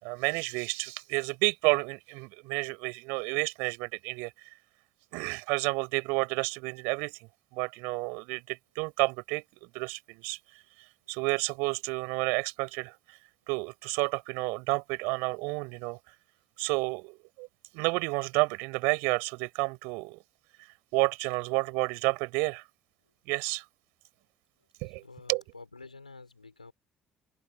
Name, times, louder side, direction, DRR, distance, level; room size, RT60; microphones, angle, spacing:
voice 1, 0.0-4.3 5.1-7.2 7.5-10.4 11.1-12.9 13.5-16.0 16.6-17.5 17.7-20.2 20.9-22.6 23.3-23.6 24.8-25.4, right 30 dB, 65° right, 5.1 m, -30 dB
voice 2, 24.6-26.7, left 3 dB, 85° left, 5.6 m, -50 dB
figure-of-eight pair, 50°, 4 cm